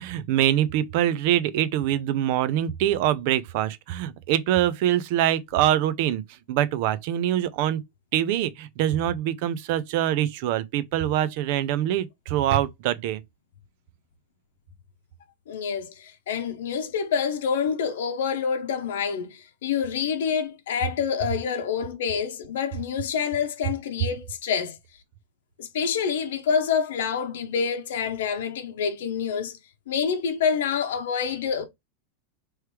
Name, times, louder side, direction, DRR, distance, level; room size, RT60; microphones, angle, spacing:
voice 1, 0.0-6.2 6.5-7.8 8.1-13.2, right 12 dB, 45° right, 0.5 m, -24 dB
voice 2, 15.5-24.8 25.6-29.6 29.9-31.7, left 7 dB, 80° left, 0.8 m, -27 dB
3.3 x 3.1 x 4.6 m
supercardioid pair, 175°, 0 cm